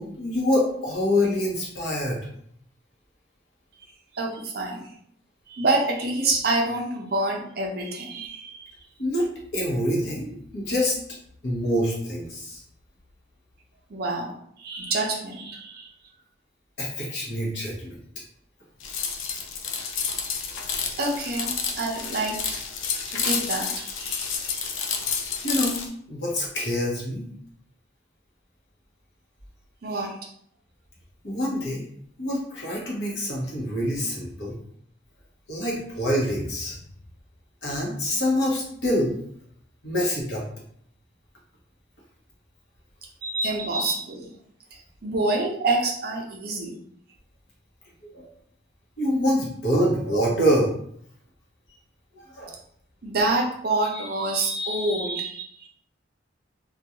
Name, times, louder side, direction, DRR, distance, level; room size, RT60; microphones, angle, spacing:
voice 1, 0.0-2.3 9.0-9.3 9.5-11.0 11.4-12.6 16.8-18.0 20.7-20.9 25.4-25.8 26.1-27.3 31.2-31.9 32.2-34.6 35.5-36.8 37.6-39.2 39.8-40.4 48.1-48.3 49.0-50.7 52.1-52.6, equal, 60° left, -4 dB, 0.8 m, -26 dB
voice 2, 4.1-4.9 5.5-8.7 13.9-14.3 14.6-15.9 20.9-22.6 23.1-24.7 25.0-25.2 29.8-30.2 43.2-44.3 44.7-46.7 53.0-55.7, right 2 dB, 50° right, 0 dB, 0.5 m, -27 dB
sound 1, 18.8-25.9, left 6 dB, 80° left, 0.4 m, -30 dB
2.4 x 2.2 x 2.8 m, 0.67 s
head